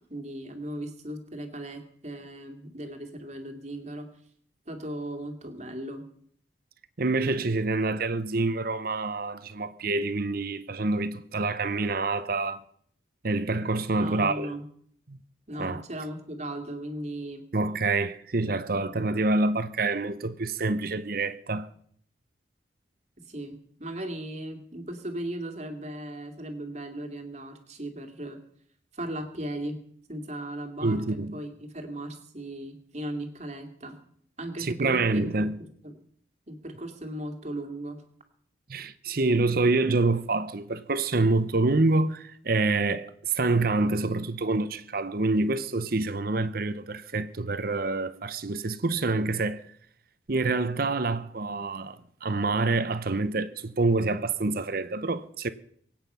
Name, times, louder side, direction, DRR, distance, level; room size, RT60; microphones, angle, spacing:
voice 1, 0.1-4.1 4.7-6.0 13.9-14.6 15.5-17.5 18.3-19.0 23.2-28.4 28.9-29.8 30.1-34.0 34.4-35.3 35.6-35.9 36.5-38.0, right 1 dB, 40° right, 2.3 m, -37 dB
voice 2, 7.0-12.6 13.2-14.5 15.1-15.2 15.6-15.8 17.5-21.7 30.8-31.4 34.6-35.6 38.7-49.6 50.3-55.5, right 3 dB, 55° right, 0.8 m, -27 dB
23.5 x 8.9 x 5.6 m
head